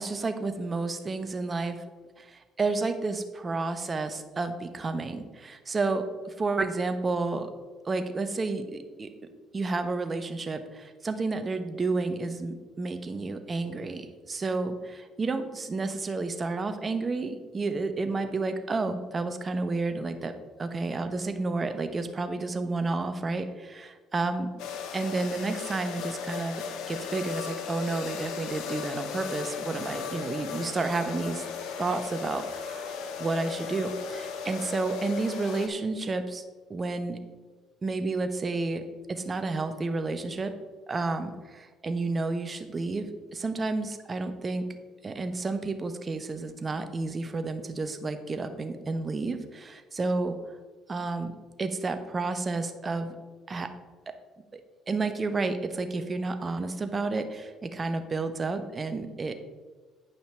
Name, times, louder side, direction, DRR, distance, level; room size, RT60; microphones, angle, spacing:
voice 1, 0.0-1.8 2.2-7.5 7.8-9.1 9.5-20.3 20.6-24.5 24.9-31.4 31.8-32.9 33.2-36.4 36.7-37.2 37.8-38.8 39.1-40.5 40.9-44.7 45.0-50.4 50.9-51.3 51.6-53.1 53.5-53.7 54.5-54.6 54.9-59.3, right 3 dB, 35° right, 8 dB, 1.0 m, -31 dB
sound 1, 24.6-35.7, left 6 dB, 70° left, 1.0 m, -36 dB
9.3 x 5.6 x 4.4 m, 1.3 s
hypercardioid pair, 60°, 0 cm